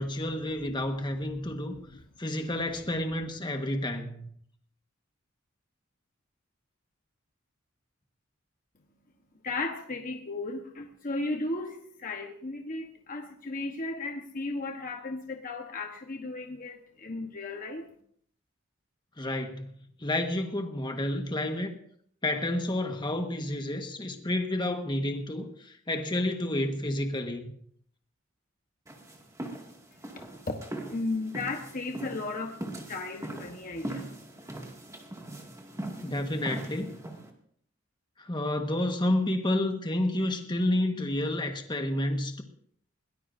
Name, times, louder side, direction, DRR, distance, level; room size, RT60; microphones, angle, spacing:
voice 1, 0.0-1.7 2.2-4.3 19.2-19.7 20.0-21.7 22.2-25.5 25.9-27.5 36.0-37.0 38.2-42.4, left 1 dB, 20° left, 5 dB, 1.4 m, -30 dB
voice 2, 1.4-2.2 9.4-17.9 29.9-32.6 32.9-34.1 34.4-34.6, left 2 dB, 40° left, 3 dB, 1.2 m, -35 dB
sound 1, 28.9-37.3, right 1 dB, 15° right, 2.2 m, -41 dB
21.5 x 18.5 x 2.7 m, 0.64 s
head